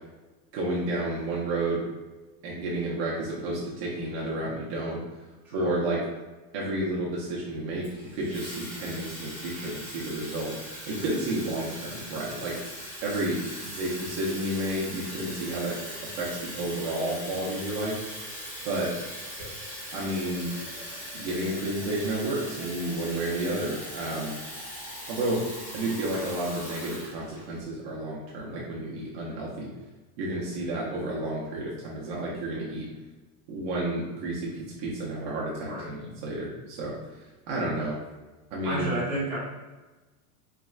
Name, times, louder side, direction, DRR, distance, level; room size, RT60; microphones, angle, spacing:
voice 1, 0.5-1.8 2.4-5.0 5.5-6.0 6.5-7.9 8.1-10.5 10.9-12.6 13.0-13.4 13.8-15.8 16.0-18.0 18.6-18.9 19.9-20.5 21.1-24.3 25.1-29.7 30.2-32.9 33.5-38.0 38.5-38.9, right 1 dB, 40° right, -5 dB, 0.9 m, -31 dB
voice 2, 5.4-5.8 13.7-13.8 35.6-35.9 38.6-39.4, right 1 dB, 5° right, -11 dB, 1.2 m, -31 dB
Water tap faucet / Fill (with liquid), 7.8-27.6, equal, 20° left, 1.5 m, -40 dB
4.7 x 3.2 x 2.4 m, 1.2 s
supercardioid pair, 175°, 44 cm